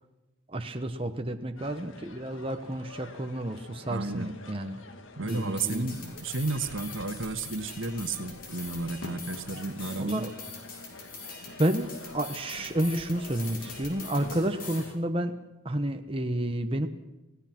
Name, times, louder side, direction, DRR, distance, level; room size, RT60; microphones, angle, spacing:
voice 1, 0.5-4.8 5.2-5.9 10.0-10.3 11.6-15.4 15.6-16.9, right 1 dB, 25° right, 5 dB, 1.1 m, -30 dB
sound 1, 1.6-15.0, left 2 dB, 80° left, 1.9 m, -47 dB
voice 2, 3.9-4.3 5.2-10.3, right 3 dB, 75° right, 9 dB, 1.6 m, -32 dB
sound 2, 5.3-14.9, left 4 dB, 45° left, 4.9 m, -44 dB
27.5 x 17.5 x 6.1 m, 1.0 s
head